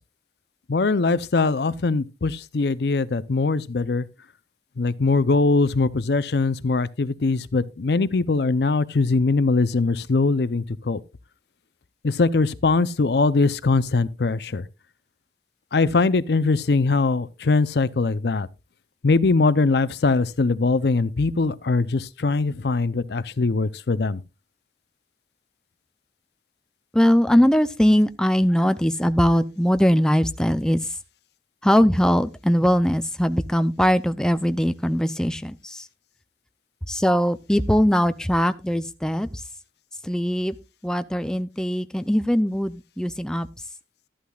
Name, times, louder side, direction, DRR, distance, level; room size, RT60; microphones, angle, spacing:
voice 1, 0.7-4.1 4.8-11.0 12.0-14.7 15.7-18.5 19.0-24.2, left 3 dB, 65° left, 0.6 m, -21 dB
voice 2, 26.9-30.9 31.6-35.9 36.9-39.4 40.0-40.5 40.8-43.5, equal, 5° left, 0.4 m, -21 dB
12.5 x 11.5 x 2.4 m
head